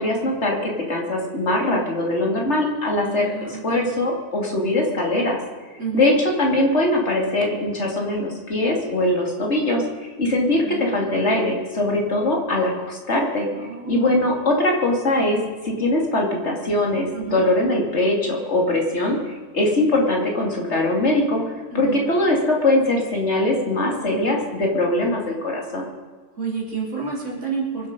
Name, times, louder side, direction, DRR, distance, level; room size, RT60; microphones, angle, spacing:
voice 1, 0.0-5.4 5.9-9.8 10.2-13.5 13.9-21.4 21.7-25.9, left 1 dB, 65° left, 0 dB, 2.9 m, -21 dB
voice 2, 3.0-3.9 5.8-6.2 10.6-11.3 13.6-14.2 17.1-17.4 21.7-22.0 24.1-24.3 26.4-27.9, right 6 dB, 80° right, -3 dB, 3.7 m, -30 dB
24.5 x 8.2 x 5.2 m, 1.5 s
omnidirectional pair, 1.2 m